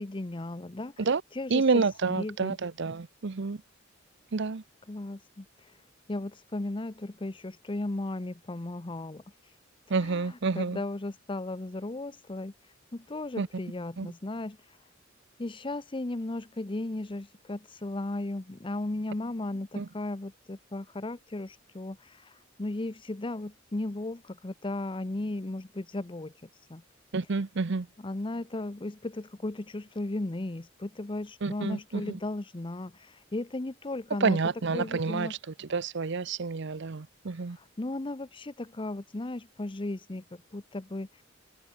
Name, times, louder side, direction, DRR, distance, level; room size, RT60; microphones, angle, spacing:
voice 1, 0.0-0.9 1.3-2.6 4.9-5.7 6.1-9.2 10.0-12.5 12.9-14.6 15.4-26.3 26.7-26.8 28.0-34.4 34.7-35.3 37.6-41.1, left 2 dB, 25° left, 0.7 m, -36 dB
voice 2, 1.5-3.6 4.3-4.6 9.9-10.8 13.4-13.5 14.0-14.1 19.8-19.9 27.1-27.9 31.4-32.2 34.2-37.6, right 4 dB, 65° right, 0.7 m, -29 dB
head